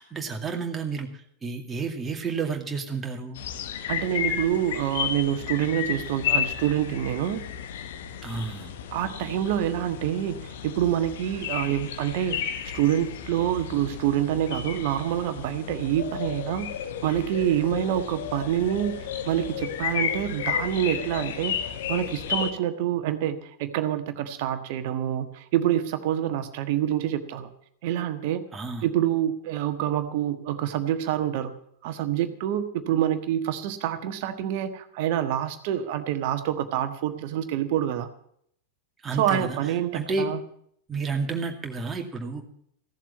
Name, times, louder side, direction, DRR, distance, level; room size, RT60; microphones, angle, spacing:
voice 1, 0.0-3.4 8.2-8.7 28.5-28.9 39.0-40.3 40.9-42.4, right 4 dB, 15° right, 2 dB, 2.3 m, -31 dB
sound 1, 3.3-22.5, left 9 dB, 55° left, 1.3 m, -33 dB
voice 2, 3.9-7.4 8.9-16.7 17.0-18.9 19.3-27.5 27.8-28.5 28.8-31.5 31.8-38.1 39.1-40.4, right 11 dB, 50° right, 9 dB, 1.4 m, -27 dB
16.0 x 7.5 x 9.1 m, 0.68 s
figure-of-eight pair, 90°, 0 cm